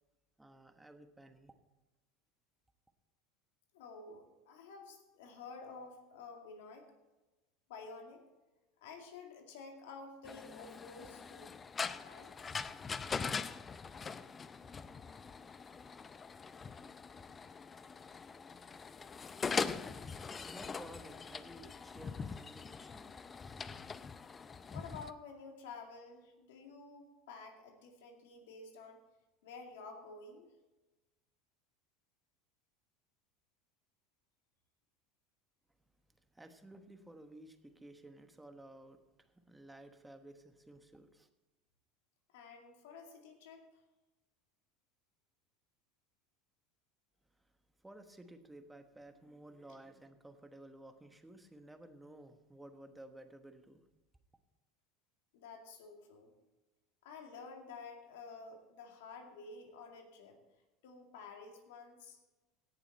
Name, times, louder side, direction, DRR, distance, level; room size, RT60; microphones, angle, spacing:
voice 1, 0.4-1.5 20.4-23.7 36.1-41.3 47.3-47.5 47.8-53.8, right 1 dB, 10° right, 7 dB, 1.2 m, -55 dB
voice 2, 3.7-6.9 7.7-8.2 8.8-11.6 12.0-12.4 24.7-29.0 29.4-30.5 42.3-43.8 55.3-56.3 57.0-60.4 60.8-62.2, left 4 dB, 75° left, 3 dB, 2.2 m, -51 dB
sound 1, 10.2-25.1, left 5 dB, 25° left, 0.5 m, -42 dB
17.0 x 7.0 x 4.2 m, 1.1 s
hypercardioid pair, 90°, 0 cm